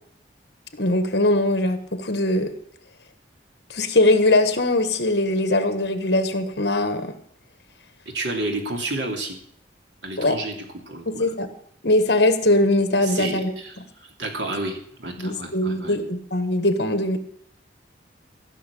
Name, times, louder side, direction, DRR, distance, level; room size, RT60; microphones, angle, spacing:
voice 1, 0.8-2.5 3.7-7.1 10.2-10.4 11.1-11.5 11.8-13.5 15.2-17.2, left 1 dB, 60° left, 9 dB, 1.5 m, -21 dB
voice 2, 8.1-9.4 10.0-10.6 10.9-11.3 13.0-16.0, right 2 dB, 70° right, 3 dB, 2.9 m, -30 dB
15.5 x 6.4 x 8.4 m, 0.64 s
head